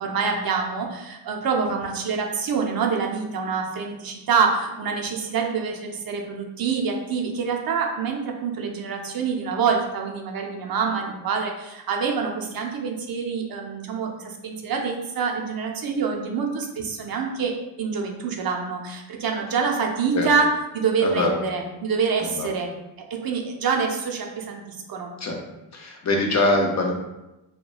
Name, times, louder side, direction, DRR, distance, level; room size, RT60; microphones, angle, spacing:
voice 1, 0.0-20.5 20.7-22.7 23.1-24.6 24.9-25.1, right 5 dB, 50° right, 1 dB, 0.5 m, -26 dB
voice 2, 22.2-22.5 25.2-25.4 25.7-26.9, left 2 dB, 40° left, 0 dB, 0.5 m, -23 dB
2.9 x 2.2 x 2.3 m, 0.96 s
cardioid pair, 85°, 47 cm